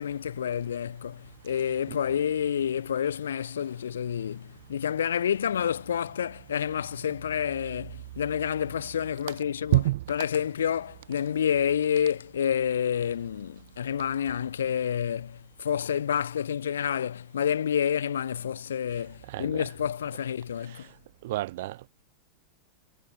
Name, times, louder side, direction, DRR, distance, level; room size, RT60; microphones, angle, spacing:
voice 1, 0.0-9.8 10.1-20.9, left 8 dB, 65° left, 1.3 m, -29 dB
voice 2, 9.7-10.0 19.3-19.7 21.2-21.9, right 17 dB, 55° right, 1.2 m, -27 dB
figure-of-eight pair, 90°, 0 cm